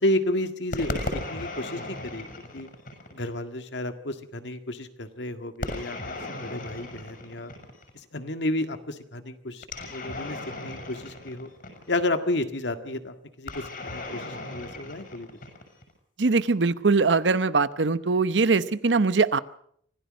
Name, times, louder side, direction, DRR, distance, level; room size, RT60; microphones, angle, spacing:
voice 1, 0.0-2.3 2.5-2.7 3.1-7.5 7.9-9.6 9.9-11.5 11.9-15.3, left 1 dB, 75° left, 8 dB, 1.8 m, -31 dB
sound 1, 0.7-3.4 5.6-8.0 9.6-12.1 13.5-15.9, left 2 dB, 55° left, 6.2 m, -36 dB
voice 2, 16.2-19.4, right 4 dB, 80° right, 15 dB, 0.8 m, -22 dB
25.0 x 16.0 x 6.3 m, 0.66 s
head